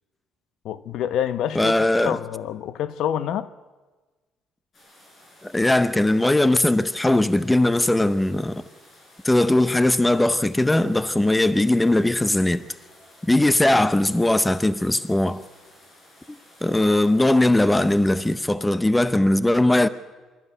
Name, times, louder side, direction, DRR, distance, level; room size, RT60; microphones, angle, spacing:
voice 1, 0.6-1.7 2.0-3.5, left 10 dB, 70° left, 0.8 m, -27 dB
voice 2, 1.5-2.2 5.4-8.6 9.2-12.6 13.2-15.4 16.3-19.9, left 1 dB, 10° left, 0.6 m, -20 dB
sound 1, 4.7-18.4, left 1 dB, 35° left, 6.3 m, -53 dB
24.0 x 13.5 x 8.3 m
cardioid pair, 130°, 0 cm